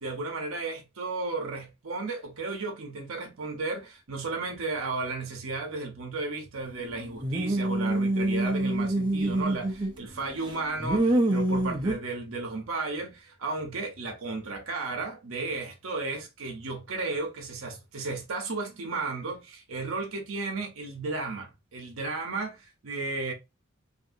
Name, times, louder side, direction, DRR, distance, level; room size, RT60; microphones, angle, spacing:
voice 1, 0.0-23.3, right 3 dB, 70° right, 0.7 m, -34 dB
sound 1, 7.2-10.0 10.4-12.0, right 1 dB, 20° right, 0.4 m, -26 dB
2.7 x 2.6 x 2.5 m
head